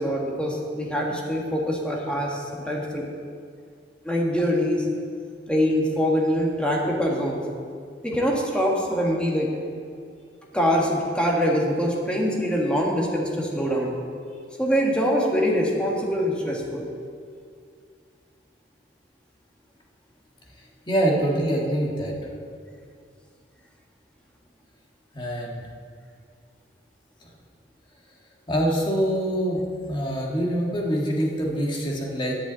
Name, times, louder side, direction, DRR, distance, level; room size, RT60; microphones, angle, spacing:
voice 1, 0.0-3.1 4.0-4.8 5.5-7.4 8.0-9.5 10.5-13.9 14.6-16.9, equal, 5° left, -2 dB, 1.5 m, -24 dB
voice 2, 20.9-22.1 25.1-25.6 27.2-27.3 28.5-32.4, right 1 dB, 25° left, -2 dB, 1.6 m, -25 dB
10.5 x 5.6 x 8.5 m, 2.2 s
head